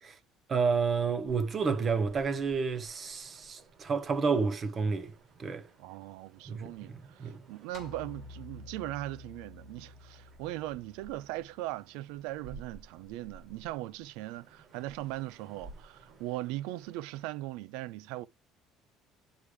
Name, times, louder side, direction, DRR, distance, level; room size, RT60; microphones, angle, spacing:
voice 1, 0.5-5.1 5.4-5.7 6.5-7.4, right 5 dB, 25° right, 0.9 m, -30 dB
sound 1, 1.3-17.3, right 3 dB, 40° right, 6.0 m, -57 dB
voice 2, 5.8-18.3, right 16 dB, 90° right, 0.5 m, -39 dB
sound 2, 7.7-12.2, left 3 dB, 30° left, 1.2 m, -51 dB
9.9 x 4.8 x 3.2 m
cardioid pair, 175°, 0 cm